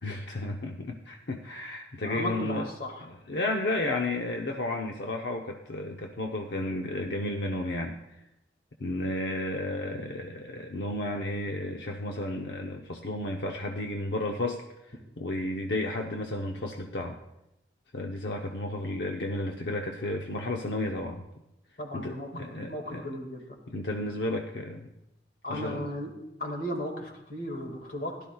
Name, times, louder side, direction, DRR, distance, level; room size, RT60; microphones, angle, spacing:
voice 1, 0.0-2.7 3.1-8.0 8.8-17.2 17.9-21.2 21.9-23.2 23.7-24.9 25.5-25.9, left 1 dB, 75° left, 2 dB, 0.8 m, -33 dB
voice 2, 2.0-3.1 21.8-23.6 25.4-26.1 26.4-28.3, left 1 dB, 50° left, 2 dB, 2.0 m, -35 dB
16.5 x 12.0 x 2.3 m, 0.90 s
head